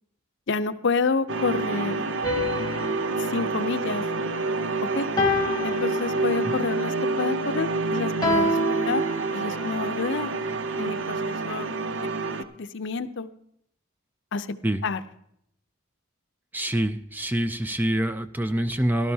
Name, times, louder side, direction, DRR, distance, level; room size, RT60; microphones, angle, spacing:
voice 1, 0.5-2.0 3.2-4.0 4.9-5.1 5.6-9.0 9.3-10.3 10.8-11.7 12.6-13.3 14.3-14.6 14.8-15.0, left 4 dB, 60° left, 11 dB, 0.6 m, -29 dB
sound 1, 1.3-12.4, right 3 dB, 60° right, 0.7 m, -28 dB
sound 2, 2.2-4.6 5.2-6.6 8.2-9.7, left 1 dB, 20° left, 1.1 m, -28 dB
voice 2, 16.5-19.1, right 1 dB, 10° right, 10 dB, 0.4 m, -26 dB
17.0 x 12.5 x 2.8 m, 0.72 s
head